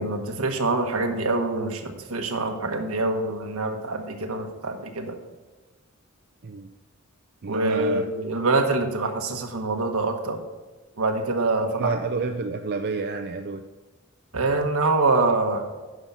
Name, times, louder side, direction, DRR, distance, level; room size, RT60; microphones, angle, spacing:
voice 1, 0.0-5.1 7.5-10.4 11.0-11.9 14.3-15.7, right 2 dB, 80° right, 5 dB, 1.2 m, -25 dB
voice 2, 7.4-8.1 11.6-13.6, right 4 dB, 50° right, 6 dB, 0.5 m, -29 dB
9.6 x 6.0 x 5.5 m, 1.2 s
head